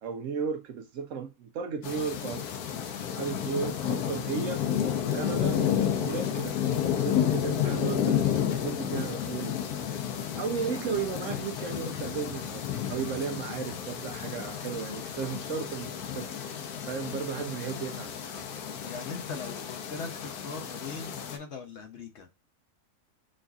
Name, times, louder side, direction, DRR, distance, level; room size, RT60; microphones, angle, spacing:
voice 1, 0.0-2.5 3.1-4.6 5.0-5.6 6.0-8.2 8.5-9.7 10.4-16.3 16.9-18.1, right 6 dB, 70° right, 0.8 m, -35 dB
sound 1, 1.8-21.4, left 9 dB, 90° left, 1.2 m, -31 dB
voice 2, 18.8-22.3, left 4 dB, 60° left, 0.9 m, -40 dB
6.2 x 2.5 x 2.3 m
omnidirectional pair, 1.5 m